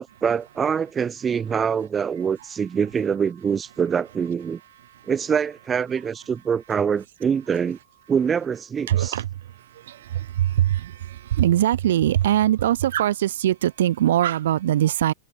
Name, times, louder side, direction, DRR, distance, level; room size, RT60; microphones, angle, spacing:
voice 1, 0.0-4.6 5.1-7.8 8.1-9.1, right 7 dB, 25° right, 0.5 m, -24 dB
voice 2, 8.9-15.1, right 12 dB, 70° right, 1.3 m, -22 dB
hypercardioid pair, 95°, 0 cm